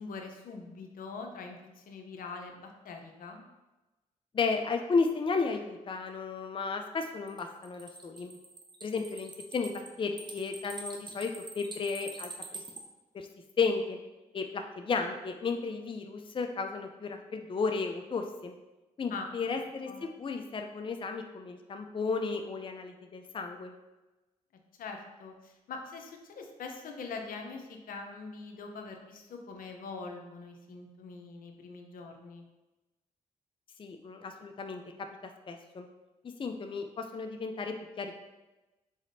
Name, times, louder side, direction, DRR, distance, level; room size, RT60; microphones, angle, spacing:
voice 1, 0.0-3.4 19.1-19.3 19.9-20.0 24.8-32.4, left 4 dB, 75° left, 3 dB, 0.7 m, -43 dB
voice 2, 4.3-8.4 8.8-12.6 13.1-13.3 13.6-14.0 14.3-18.5 19.0-23.7 33.8-35.1 35.5-35.9 36.4-38.2, left 4 dB, 35° left, 5 dB, 0.5 m, -33 dB
sound 1, 7.3-12.8, right 3 dB, 30° right, 0.7 m, -45 dB
4.9 x 4.1 x 2.7 m, 1.1 s
supercardioid pair, 55°, 15 cm